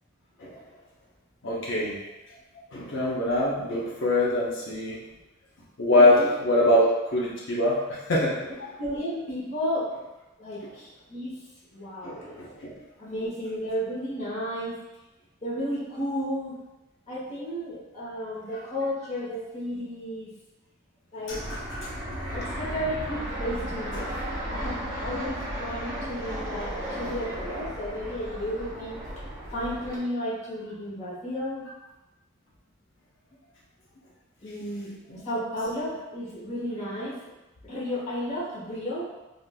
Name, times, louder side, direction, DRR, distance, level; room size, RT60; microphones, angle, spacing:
voice 1, 1.4-1.9 2.7-5.0 5.8-8.5 10.6-10.7 12.0-12.7 21.3-21.8 23.9-24.1 35.1-35.2, left 1 dB, 60° left, -5 dB, 0.6 m, -24 dB
voice 2, 8.8-9.9 10.4-11.3 11.7-12.3 13.0-14.8 15.4-16.5 17.1-20.3 21.1-21.5 22.3-24.2 24.5-29.0 29.5-31.6 34.4-34.9 35.2-37.2 37.6-39.1, equal, 30° left, -8 dB, 1.0 m, -33 dB
Fixed-wing aircraft airplane, 21.3-30.0, equal, 15° right, 0.8 m, -34 dB
3.4 x 2.5 x 2.3 m, 1.0 s
head